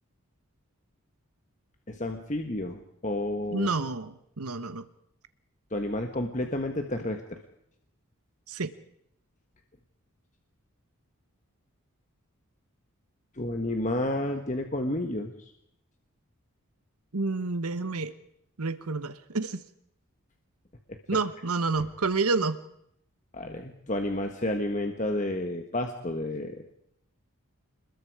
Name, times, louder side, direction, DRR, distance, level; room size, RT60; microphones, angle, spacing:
voice 1, 1.9-3.7 5.7-7.4 13.4-15.5 23.3-26.6, left 1 dB, 35° left, 5 dB, 1.5 m, -31 dB
voice 2, 3.5-4.8 8.5-8.7 17.1-18.1 18.6-19.6 21.1-22.6, right 3 dB, 85° right, 12 dB, 1.2 m, -29 dB
28.0 x 21.0 x 4.9 m, 0.72 s
head